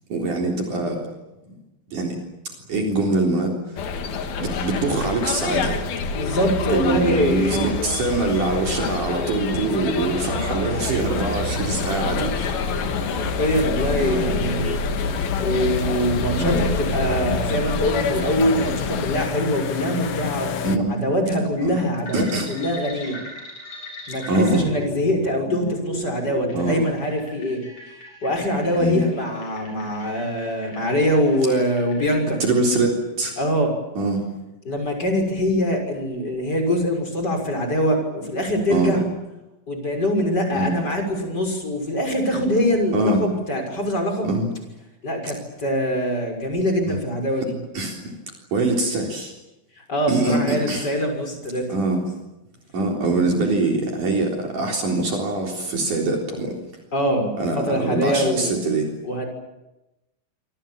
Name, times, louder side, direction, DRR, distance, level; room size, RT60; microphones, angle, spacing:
voice 1, 0.1-1.0 1.5-1.6 1.9-2.2 2.7-3.8 4.4-5.8 6.7-12.5 14.0-14.3 16.4-16.7 20.6-20.9 21.6-21.8 22.1-22.5 24.3-24.6 26.5-26.9 28.8-29.1 32.4-33.4 34.0-34.2 38.7-39.0 40.5-40.7 42.9-43.2 44.2-44.5 46.9-47.0 47.7-48.0 48.5-49.3 50.1-50.9 51.7-52.0 52.7-56.5 57.4-58.9, right 2 dB, 60° right, 1 dB, 5.2 m, -23 dB
sound 1, 3.8-19.3, left 4 dB, 80° left, 3.9 m, -27 dB
voice 2, 6.1-7.7 13.2-14.7 15.4-23.2 24.1-27.6 28.2-32.4 33.4-33.8 34.6-39.0 39.7-44.4 45.0-47.6 49.9-51.6 56.9-58.7 59.0-59.3, equal, 25° left, 4 dB, 6.6 m, -23 dB
sound 2, 11.1-20.8, left 9 dB, 60° left, 1.7 m, -32 dB
sound 3, 22.1-32.3, left 1 dB, 45° left, 9.1 m, -38 dB
27.0 x 25.5 x 7.4 m, 0.96 s
omnidirectional pair, 4.2 m